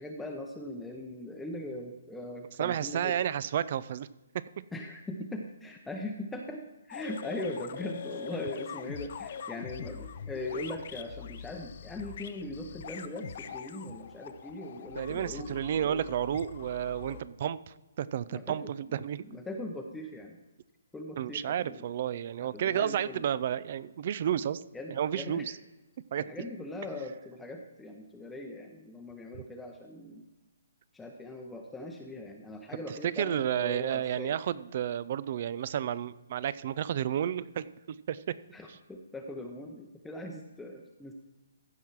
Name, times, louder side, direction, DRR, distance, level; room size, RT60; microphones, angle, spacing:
voice 1, 0.0-3.2 4.7-16.1 17.0-17.2 18.3-20.4 20.9-21.9 22.4-23.2 24.7-25.5 26.2-30.3 30.9-34.4 38.5-41.1, left 1 dB, 5° left, 1 dB, 0.7 m, -40 dB
voice 2, 2.6-4.1 15.0-19.2 21.2-24.6 24.9-25.5 26.1-26.3 33.0-38.2, right 10 dB, 45° right, 18 dB, 0.4 m, -31 dB
sound 1, 6.9-17.2, left 7 dB, 50° left, 0.6 m, -43 dB
15.0 x 5.9 x 4.6 m, 1.1 s
figure-of-eight pair, 135°, 0 cm